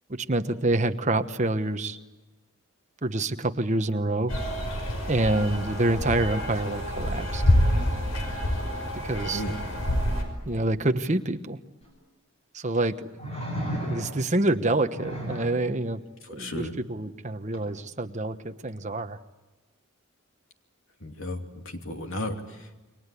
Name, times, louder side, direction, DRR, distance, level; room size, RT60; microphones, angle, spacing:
voice 1, 0.1-2.0 3.0-4.3 5.1-7.4 9.0-9.4 10.5-11.6 12.5-13.0 13.8-16.0 16.3-19.2, right 2 dB, 35° right, 8 dB, 1.1 m, -27 dB
sound 1, 4.3-10.2, left 1 dB, 85° left, 6.0 m, -27 dB
voice 2, 9.2-9.5 16.2-16.7 21.0-22.8, left 1 dB, 70° left, 4 dB, 2.8 m, -34 dB
sound 2, 11.8-11.9 13.2-14.4 14.9-15.6 17.5-17.7, equal, 30° left, 7.8 m, -33 dB
28.5 x 23.5 x 8.4 m, 1.1 s
head